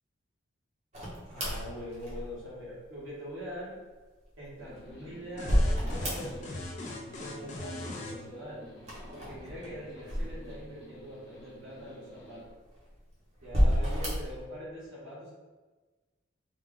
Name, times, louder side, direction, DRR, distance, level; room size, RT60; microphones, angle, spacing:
sound 1, 0.9-2.6 4.4-6.7 6.9-7.6 8.8-10.9 11.5-11.6 12.4-13.0 13.4-14.4, equal, 35° right, 0.8 m, -30 dB
voice 1, 1.3-3.8 4.4-6.5 7.1-8.6 9.1-12.4 13.4-15.3, equal, 80° right, -6 dB, 1.2 m, -43 dB
sound 2, 4.6-12.4, equal, 55° left, 0.8 m, -52 dB
sound 3, 5.4-8.2, left 2 dB, 35° left, 0.4 m, -39 dB
3.2 x 2.4 x 3.5 m, 1.3 s
head